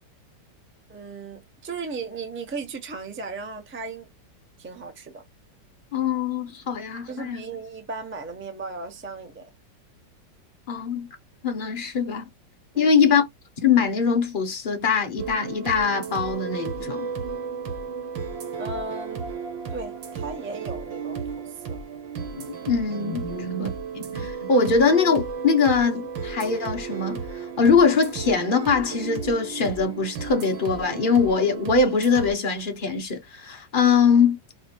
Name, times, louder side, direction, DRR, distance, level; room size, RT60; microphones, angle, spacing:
voice 1, 0.9-4.1 4.6-5.2 7.1-9.5 12.7-13.1 18.6-19.3 19.7-21.8 23.3-23.5, right 3 dB, 15° right, 0.4 m, -36 dB
voice 2, 5.9-7.4 10.7-11.1 11.4-12.3 12.8-13.2 13.6-17.1 22.4-27.2 27.6-34.4, left 5 dB, 45° left, 0.7 m, -22 dB
sound 1, 15.2-32.3, right 5 dB, 90° right, 1.8 m, -34 dB
4.9 x 2.1 x 4.4 m
omnidirectional pair, 2.0 m